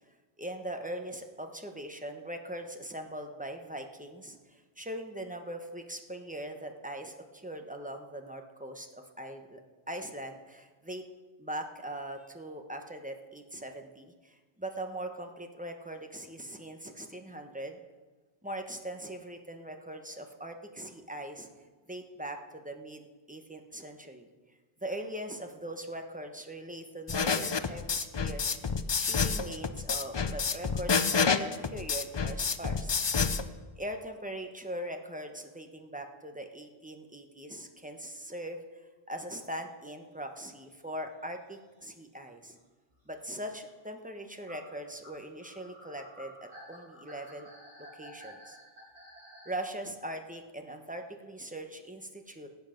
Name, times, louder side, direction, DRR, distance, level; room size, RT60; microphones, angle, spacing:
voice 1, 0.4-9.6 9.9-11.0 11.4-17.8 18.4-21.5 21.9-23.0 23.3-24.3 24.8-33.0 33.8-42.6 43.1-47.5 47.9-48.6 49.4-52.5, right 1 dB, 10° right, 4 dB, 1.0 m, -41 dB
sound 1, 27.1-33.4, left 5 dB, 35° left, 0.4 m, -29 dB
sound 2, 40.5-40.6 40.9-41.1 41.9-42.0 42.2-42.3 42.9-43.1 43.7-43.8 44.5-49.6, equal, 90° right, 5.6 m, -52 dB
19.5 x 8.2 x 5.2 m, 1.3 s
omnidirectional pair, 1.1 m